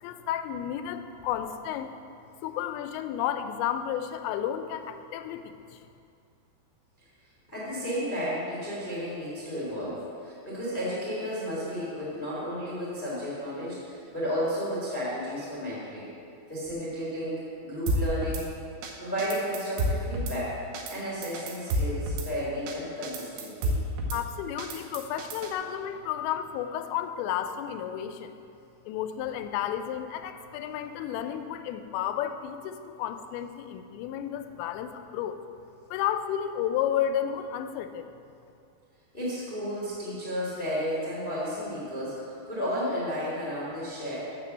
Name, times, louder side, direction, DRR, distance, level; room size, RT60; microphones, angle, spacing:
voice 1, 0.0-2.0 2.4-5.8 24.1-28.4 28.9-35.4 35.9-38.1, left 10 dB, 90° left, 9 dB, 2.8 m, -32 dB
voice 2, 7.5-16.1 16.5-18.4 19.0-20.6 20.9-23.8 39.1-44.2, equal, 55° left, -8 dB, 0.6 m, -33 dB
Drum kit / Snare drum, 17.9-18.4 18.8-18.9 19.2-20.4 20.7-21.0 21.2-22.3 22.7-22.8 23.0-24.2 24.6-25.5, right 1 dB, 85° right, 3.1 m, -30 dB
6.8 x 6.8 x 7.2 m, 2.5 s
omnidirectional pair, 5.1 m